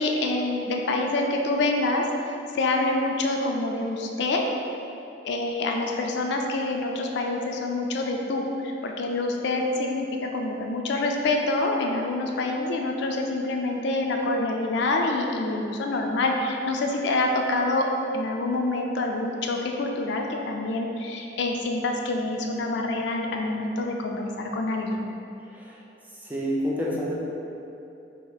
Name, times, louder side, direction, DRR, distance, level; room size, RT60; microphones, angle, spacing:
voice 1, 0.0-2.1 2.5-4.5 5.2-17.9 18.1-25.0, left 2 dB, 65° left, 2 dB, 0.3 m, -26 dB
voice 2, 25.5-25.9 26.2-27.2, equal, 10° right, -4 dB, 0.4 m, -29 dB
2.8 x 2.5 x 3.9 m, 2.8 s
head